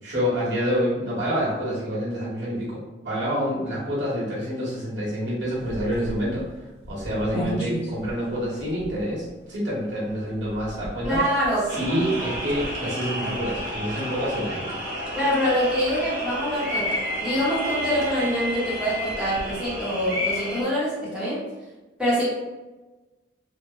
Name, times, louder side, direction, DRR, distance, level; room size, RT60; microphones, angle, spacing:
voice 1, 0.0-6.5 6.9-11.2 11.7-14.8, equal, 85° right, -7 dB, 1.3 m, -27 dB
sound 1, 5.5-20.1, equal, 35° left, 1.2 m, -39 dB
voice 2, 11.0-11.7 15.1-21.4 22.0-22.2, equal, 5° right, -10 dB, 0.9 m, -25 dB
sound 2, 11.7-20.6, equal, 65° right, 0.8 m, -31 dB
2.9 x 2.1 x 2.2 m, 1.2 s
head